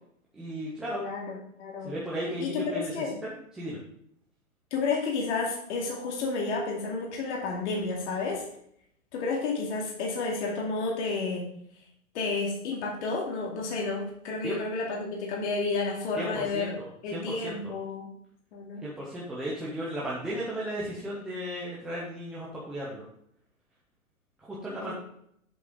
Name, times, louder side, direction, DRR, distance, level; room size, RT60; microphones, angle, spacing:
voice 1, 0.3-1.0 1.8-2.9 3.2-3.8 14.4-14.6 16.2-17.5 18.8-23.0 24.4-24.9, equal, ahead, -7 dB, 0.4 m, -35 dB
voice 2, 0.9-1.9 2.4-3.1 4.7-8.4 9.1-11.5 12.1-16.7 17.0-18.1 18.5-18.8 24.8-24.9, left 4 dB, 55° left, -2 dB, 2.5 m, -31 dB
7.7 x 7.7 x 3.6 m, 0.71 s
hypercardioid pair, 130°, 42 cm